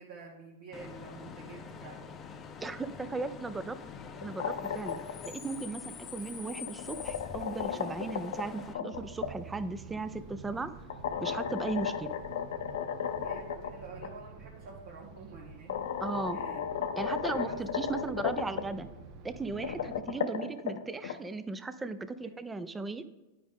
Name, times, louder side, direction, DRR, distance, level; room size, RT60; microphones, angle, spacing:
voice 1, 0.0-2.1 13.2-15.8 16.3-16.6 17.2-17.6, right 4 dB, 65° right, -3 dB, 1.4 m, -48 dB
Bus / Idling / Screech, 0.7-8.7, left 6 dB, 25° left, 0.6 m, -45 dB
voice 2, 2.6-3.8 4.2-10.7 11.2-12.1 16.0-16.4 17.0-18.9 19.2-23.0, right 3 dB, 10° right, 12 dB, 0.5 m, -37 dB
sound 1, 4.1-5.3 6.4-9.3 10.9-13.7 14.0-14.1 15.2-15.3 15.7-18.6 19.4-21.1, left 8 dB, 75° left, 0.6 m, -34 dB
sound 2, 8.9-20.0, right 5 dB, 45° right, 0.8 m, -49 dB
9.3 x 5.0 x 3.6 m, 1.1 s
hypercardioid pair, 125°, 0 cm